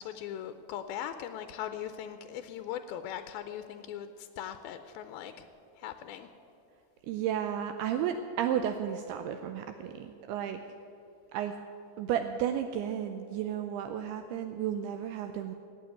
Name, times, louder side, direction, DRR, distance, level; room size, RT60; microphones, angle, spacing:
voice 1, 0.0-5.5 5.8-6.3, left 10 dB, 85° left, 9 dB, 2.2 m, -40 dB
voice 2, 7.1-10.6 11.3-11.6 12.0-15.5, right 9 dB, 80° right, 7 dB, 2.5 m, -33 dB
16.5 x 8.9 x 9.2 m, 2.7 s
omnidirectional pair, 4.9 m